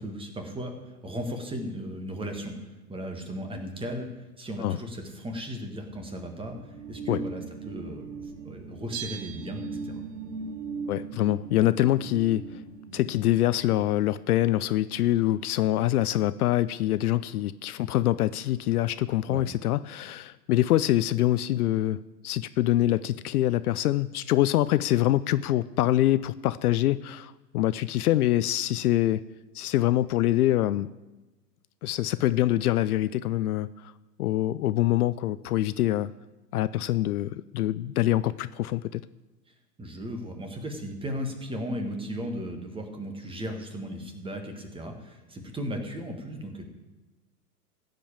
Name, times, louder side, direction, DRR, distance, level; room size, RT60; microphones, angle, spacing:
voice 1, 0.0-2.5 2.9-10.0 19.3-19.4 39.5-46.6, equal, 10° right, 4 dB, 1.6 m, -36 dB
sound 1, 5.5-14.8, right 4 dB, 75° right, 2.7 m, -40 dB
Bell, 8.9-10.3 10.6-10.7, right 10 dB, 35° right, 0.9 m, -41 dB
voice 2, 10.9-12.5 12.9-29.2 29.5-30.9 31.8-33.7 34.2-36.1 36.5-39.0, left 14 dB, 65° left, 16 dB, 0.6 m, -25 dB
15.0 x 5.3 x 8.7 m, 1.1 s
hypercardioid pair, 120°, 48 cm